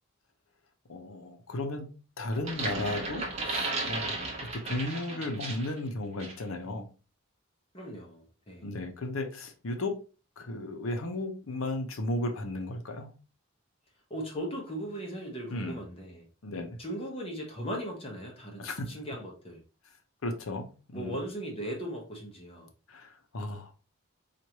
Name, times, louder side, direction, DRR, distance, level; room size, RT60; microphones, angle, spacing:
voice 1, 0.9-4.2 4.5-6.9 8.6-10.0 10.4-13.1 15.5-15.8 16.4-16.8 18.6-19.0 20.2-21.2 22.9-23.7, left 1 dB, 75° left, 6 dB, 0.7 m, -35 dB
sound 1, 2.3-5.8 6.2-6.4, right 2 dB, 30° right, 0.8 m, -34 dB
voice 2, 7.7-8.7 14.1-16.3 16.8-19.6 20.9-22.7, equal, 25° left, 0 dB, 0.8 m, -38 dB
4.6 x 2.5 x 2.9 m, 0.34 s
head